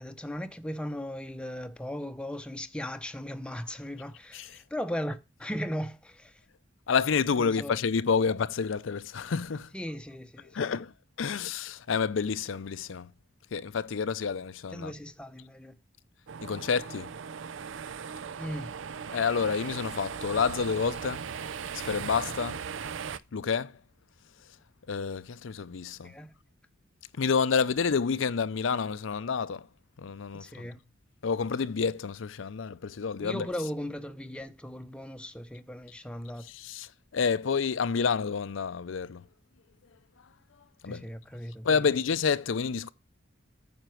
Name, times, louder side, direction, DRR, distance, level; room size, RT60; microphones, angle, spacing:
voice 1, 0.0-6.4 7.4-7.8 9.7-10.7 14.7-15.8 18.4-18.7 26.0-26.3 30.3-30.8 33.2-36.5 40.9-41.9, equal, 5° left, 0.7 m, -37 dB
voice 2, 6.9-9.7 10.5-10.9 11.2-13.1 13.5-14.9 16.4-17.1 19.1-21.3 21.7-22.6 23.3-23.8 24.9-26.1 27.2-29.7 30.0-30.7 31.2-33.5 36.5-39.2 40.8-41.1 41.6-42.9, left 5 dB, 75° left, 0.5 m, -29 dB
sound 1, 16.3-23.2, right 6 dB, 75° right, 0.5 m, -38 dB
9.2 x 5.9 x 4.5 m
head